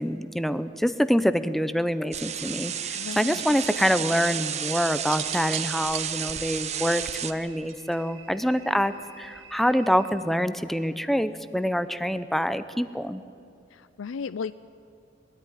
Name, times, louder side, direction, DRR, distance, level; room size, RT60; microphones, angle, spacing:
voice 1, 0.0-13.2, equal, ahead, 13 dB, 0.6 m, -26 dB
sound 1, 2.1-7.3, right 9 dB, 35° right, 0.8 m, -32 dB
sound 2, 2.4-10.1, right 5 dB, 65° right, 3.2 m, -49 dB
voice 2, 2.9-3.4 13.7-14.5, left 6 dB, 80° left, 15 dB, 0.4 m, -35 dB
sound 3, 5.0-8.1 9.2-9.6, right 9 dB, 90° right, 1.6 m, -38 dB
21.5 x 13.5 x 10.0 m, 2.7 s
head